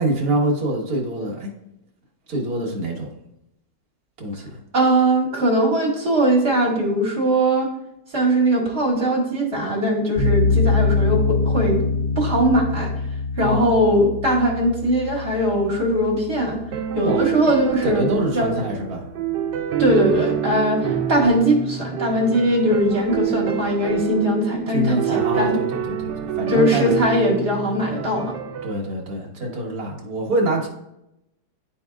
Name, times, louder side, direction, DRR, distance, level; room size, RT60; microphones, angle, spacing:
voice 1, 0.0-1.5 2.3-3.1 4.2-4.6 13.4-13.7 17.0-17.3 17.8-19.1 24.7-26.9 28.6-30.7, right 1 dB, 60° right, -1 dB, 1.8 m, -25 dB
voice 2, 4.7-7.7 8.1-11.8 12.2-12.9 13.4-16.6 16.9-18.0 18.3-18.5 19.8-25.6 26.5-28.3, right 1 dB, 35° right, -3 dB, 2.1 m, -20 dB
sound 1, 10.2-17.3, left 3 dB, 40° left, 1.8 m, -24 dB
sound 2, 16.7-28.7, right 9 dB, 85° right, 1.3 m, -27 dB
11.5 x 4.2 x 2.3 m, 0.85 s
omnidirectional pair, 1.8 m